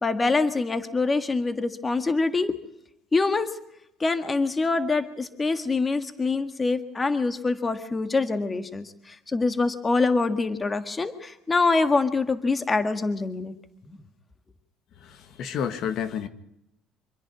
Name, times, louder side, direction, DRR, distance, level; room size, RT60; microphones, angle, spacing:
voice 1, 0.0-2.6 3.1-3.5 4.0-13.5, left 3 dB, 20° left, 9 dB, 1.7 m, -25 dB
voice 2, 15.0-16.3, left 8 dB, 60° left, 10 dB, 1.7 m, -30 dB
26.0 x 10.5 x 9.5 m, 0.82 s
cardioid pair, 115°, 0 cm